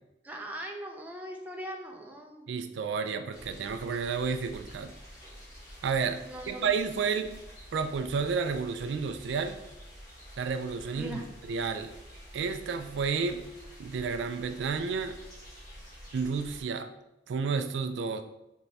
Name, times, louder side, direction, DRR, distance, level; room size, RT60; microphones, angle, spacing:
voice 1, 0.2-2.5 6.3-6.7 11.0-11.2, equal, 10° right, 1 dB, 0.5 m, -40 dB
voice 2, 2.5-4.9 5.8-7.3 7.7-9.6 10.4-11.2 11.5-11.9 12.3-13.4 13.8-15.2 16.1-16.9 17.3-18.2, right 5 dB, 80° right, 8 dB, 0.3 m, -31 dB
sound 1, 3.3-16.6, equal, 45° left, 1.5 m, -49 dB
4.1 x 3.4 x 3.3 m, 0.93 s
head